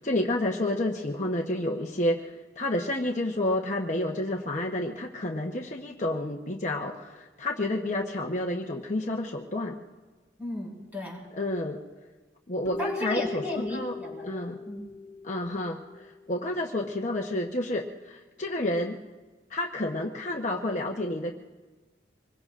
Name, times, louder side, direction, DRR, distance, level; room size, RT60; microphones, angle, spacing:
voice 1, 0.0-9.8 11.4-11.8 12.5-13.4 13.7-13.9 14.2-14.6 15.2-19.0 19.5-21.3, left 1 dB, 40° left, 0 dB, 1.0 m, -30 dB
voice 2, 10.4-11.2 12.8-14.8, left 1 dB, 10° right, -3 dB, 5.5 m, -35 dB
sound 1, 12.7-16.4, left 3 dB, 25° left, 4.6 m, -38 dB
26.0 x 22.0 x 2.5 m, 1.3 s
head